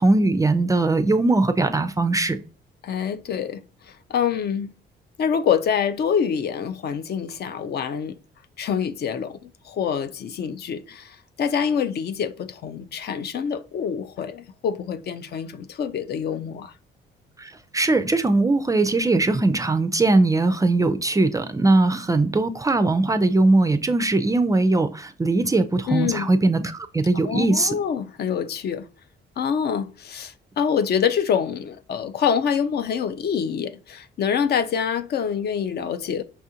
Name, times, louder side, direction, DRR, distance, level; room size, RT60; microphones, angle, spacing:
voice 1, 0.0-2.4 17.4-27.7, right 2 dB, 15° right, 0.3 m, -20 dB
voice 2, 2.8-4.7 5.2-8.2 8.6-16.7 25.9-26.3 27.2-28.9 29.4-36.2, left 7 dB, 55° left, 0.4 m, -26 dB
5.6 x 2.4 x 2.7 m
cardioid pair, 90°, 20 cm